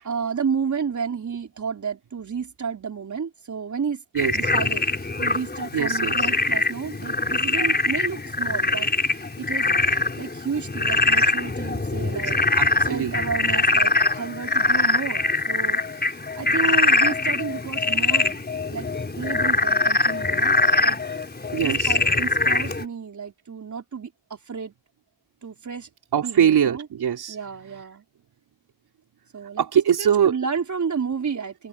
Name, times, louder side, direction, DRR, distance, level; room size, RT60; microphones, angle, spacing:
voice 1, 0.0-4.0 4.3-9.7 10.2-12.4 12.9-20.5 20.8-21.0 21.6-24.7 25.4-25.9 26.1-26.9 27.3-28.0 29.3-29.6 30.0-31.7, right 6 dB, 50° right, 4.4 m, -31 dB
Frog, 4.2-22.8, left 3 dB, 25° left, 4.7 m, -23 dB
voice 2, 5.7-6.3 12.1-12.2 12.5-13.1 21.5-22.0 26.1-27.4 29.6-30.3, right 9 dB, 85° right, 4.4 m, -22 dB
open air
cardioid pair, 90°, 37 cm